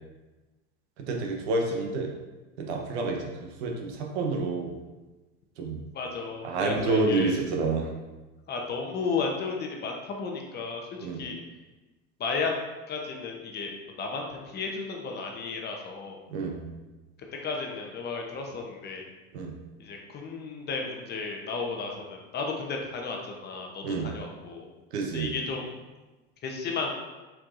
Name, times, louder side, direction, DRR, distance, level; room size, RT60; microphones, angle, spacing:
voice 1, 1.1-2.1 2.6-4.7 5.6-5.8 6.4-7.9 11.0-11.2 16.3-16.6 19.3-19.5 23.8-24.1 24.9-25.3, right 3 dB, 85° right, 1 dB, 0.9 m, -28 dB
voice 2, 5.9-7.4 8.5-11.4 12.2-12.5 12.9-13.7 14.0-16.2 17.4-19.1 19.8-24.7 25.1-25.7 26.4-26.9, left 4 dB, 30° left, 1 dB, 0.8 m, -33 dB
4.5 x 4.3 x 2.5 m, 1.2 s
supercardioid pair, 110°, 32 cm